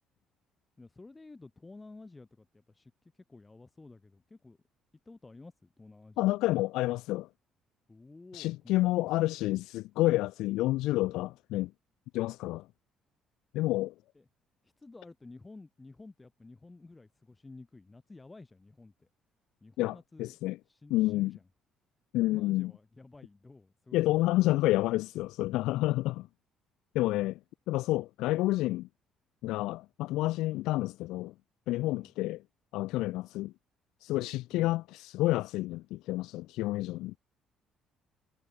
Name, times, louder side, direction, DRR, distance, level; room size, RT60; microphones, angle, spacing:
voice 1, 0.8-4.6 5.0-6.2 7.9-8.8 9.2-9.3 14.1-14.3 14.6-19.1 19.6-20.4 20.7-21.4 22.2-24.6 31.8-32.1 34.5-34.7, left 3 dB, 15° left, 1.7 m, -52 dB
voice 2, 6.2-7.3 8.3-11.7 12.1-12.7 13.5-13.9 19.8-20.6 20.9-21.4 22.1-22.7 23.9-26.3 26.9-27.4 27.7-28.9 29.4-31.3 31.7-32.4 32.7-33.5 34.0-37.2, left 18 dB, 90° left, 0.4 m, -29 dB
cardioid pair, 120°, 0 cm